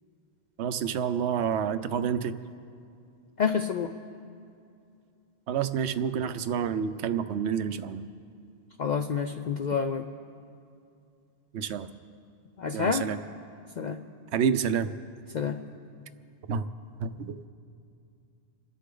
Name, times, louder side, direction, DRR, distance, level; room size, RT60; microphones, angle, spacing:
voice 1, 0.6-2.3 5.5-8.1 11.5-11.9 12.7-13.2 14.3-14.9 16.5-16.6 17.0-17.5, right 7 dB, 80° right, 11 dB, 0.9 m, -28 dB
voice 2, 3.4-3.9 8.8-10.1 12.6-13.1 13.8-14.0 15.3-15.6, left 6 dB, 55° left, 6 dB, 0.5 m, -28 dB
29.0 x 10.0 x 3.8 m, 2.5 s
omnidirectional pair, 1.1 m